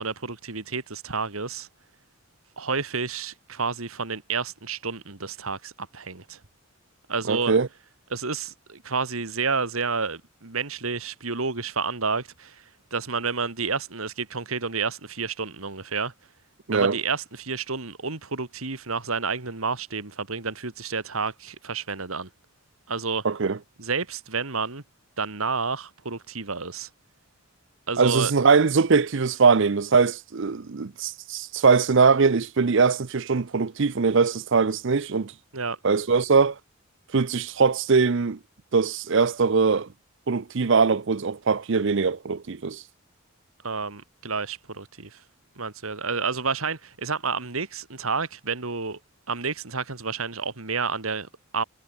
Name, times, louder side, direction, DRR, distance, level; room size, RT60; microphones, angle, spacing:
voice 1, 0.0-1.7 2.6-6.4 7.1-7.6 8.1-12.6 12.9-16.1 16.7-22.3 22.9-23.2 23.8-24.8 25.2-26.9 27.9-28.3 35.5-35.8 43.6-45.2 45.6-49.0 49.3-51.6, right 4 dB, 75° right, 2.1 m, -30 dB
voice 2, 7.3-7.7 16.7-17.0 23.2-23.6 28.0-35.3 35.8-36.6 37.1-38.4 38.7-39.9 40.3-42.8, right 5 dB, 60° right, 0.6 m, -21 dB
head